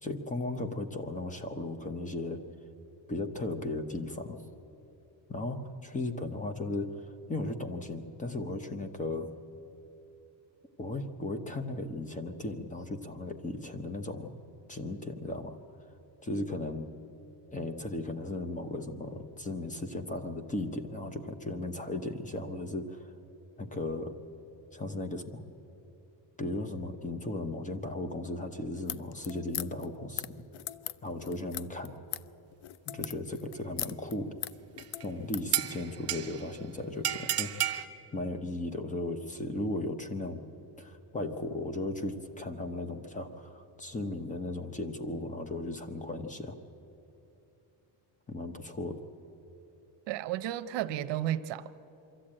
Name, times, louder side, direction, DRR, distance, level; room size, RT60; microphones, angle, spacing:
voice 1, 0.0-2.4 3.1-4.4 5.3-7.0 7.3-9.3 10.8-14.3 14.7-15.6 16.2-16.9 17.5-23.1 23.6-24.2 24.7-25.4 26.4-30.4 31.0-31.9 32.9-34.4 35.0-37.7 38.1-40.4 40.8-46.6 48.3-49.0, left 2 dB, 15° left, 9 dB, 0.9 m, -36 dB
sound 1, 28.8-35.5, left 14 dB, 70° left, 0.6 m, -40 dB
sound 2, 34.8-35.0 35.5-36.5 37.0-37.9, right 11 dB, 35° right, 0.8 m, -31 dB
voice 2, 50.1-51.9, right 12 dB, 75° right, 12 dB, 0.8 m, -33 dB
23.5 x 13.5 x 8.8 m, 2.9 s
cardioid pair, 155°, 43 cm